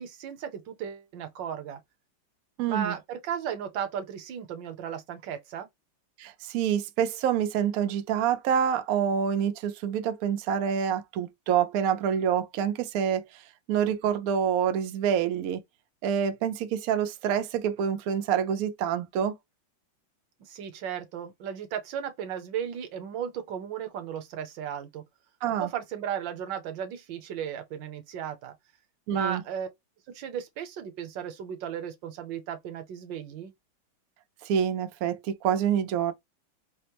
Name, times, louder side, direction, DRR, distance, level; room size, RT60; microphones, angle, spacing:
voice 1, 0.0-1.8 2.7-5.7 20.4-25.0 25.6-28.5 29.1-29.7 30.1-33.5, right 8 dB, 70° right, 1.4 m, -35 dB
voice 2, 2.6-2.9 6.2-13.2 13.7-15.6 16.0-19.3 25.4-25.7 29.1-29.4 34.4-36.1, right 8 dB, 90° right, 0.7 m, -27 dB
5.0 x 2.0 x 2.9 m
omnidirectional pair, 2.2 m